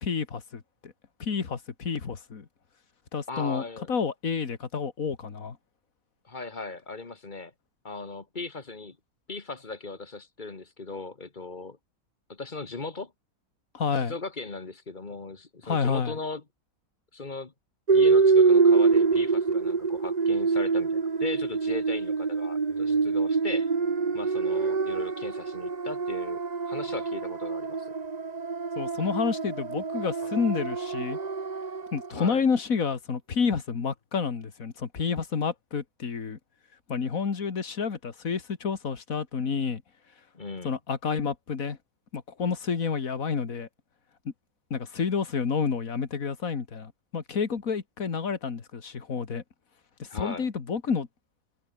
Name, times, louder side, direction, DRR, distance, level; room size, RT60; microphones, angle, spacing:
voice 1, 0.0-0.9 1.2-2.5 3.1-5.6 13.7-14.1 15.6-16.2 28.8-31.2 31.9-36.4 36.9-39.8 40.6-41.8 42.1-43.7 44.3-44.4 44.7-49.4 50.0-51.1, left 5 dB, 65° left, 2.4 m, -29 dB
voice 2, 3.3-3.9 6.2-7.5 7.8-9.0 9.3-11.8 12.3-13.1 13.9-16.4 17.1-17.5 17.9-23.7 24.1-26.4 26.7-27.9 32.1-32.4 40.3-40.8 50.1-50.5, left 3 dB, 35° left, 1.7 m, -38 dB
sound 1, 17.9-32.1, right 4 dB, 30° right, 1.2 m, -25 dB
omnidirectional pair, 1.5 m